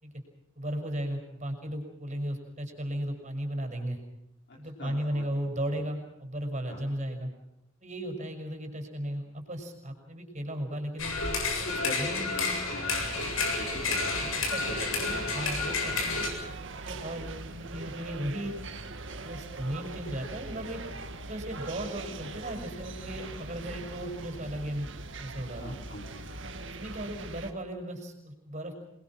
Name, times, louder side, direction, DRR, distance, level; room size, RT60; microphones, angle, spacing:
voice 1, 0.6-4.0 4.6-7.3 7.8-11.2 11.6-11.7 12.0-12.5 14.1-16.2 16.8-18.6 19.2-20.8 21.2-24.9 25.2-25.7 26.7-28.7, right 1 dB, 35° right, 5 dB, 6.1 m, -36 dB
voice 2, 4.5-5.3 6.7-6.8 11.6-13.3 13.6-14.5 14.7-14.8 25.5-26.4, left 1 dB, 55° left, -3 dB, 4.7 m, -42 dB
sound 1, 11.0-16.3, left 3 dB, 80° left, 7.8 m, -30 dB
sound 2, 12.9-27.5, right 2 dB, 60° right, 2.2 m, -41 dB
28.0 x 22.0 x 6.2 m, 0.84 s
head